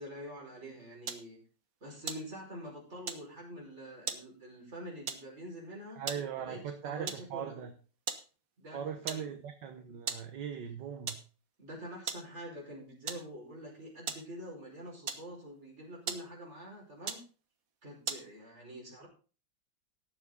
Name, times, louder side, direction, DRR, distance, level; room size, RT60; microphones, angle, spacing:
voice 1, 0.0-1.4 1.8-6.0 6.4-7.5 8.6-9.2 11.6-17.2 17.8-19.1, equal, 35° right, -3 dB, 5.7 m, -46 dB
sound 1, 1.1-1.3 2.0-2.7 3.1-3.3 4.1-4.3 5.1-5.3 5.9-6.3 7.1-7.3 8.1-8.3 8.6-8.7 9.1-9.4 10.1-10.3 11.1-11.4 12.1-12.3 13.1-13.3 14.1-14.3 15.0-15.6 16.1-16.4 17.1-17.3 18.1-18.3, right 6 dB, 50° right, 1.5 m, -39 dB
voice 2, 6.0-7.7 8.7-11.2, right 8 dB, 65° right, 6 dB, 1.7 m, -39 dB
18.0 x 7.3 x 4.0 m, 0.37 s
omnidirectional pair, 2.1 m